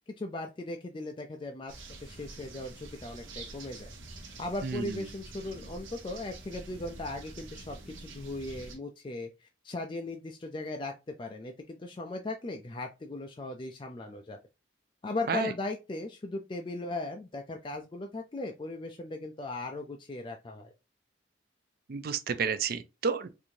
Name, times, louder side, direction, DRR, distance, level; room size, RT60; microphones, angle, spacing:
voice 1, 0.1-1.7 2.0-3.9 4.4-14.4 15.0-20.7, left 2 dB, 25° left, 0.3 m, -38 dB
sound 1, 1.7-8.8, right 2 dB, 70° right, 1.0 m, -46 dB
voice 2, 4.6-4.9 15.3-15.5 21.9-23.4, right 5 dB, 50° right, 0.4 m, -31 dB
4.4 x 2.6 x 2.6 m
head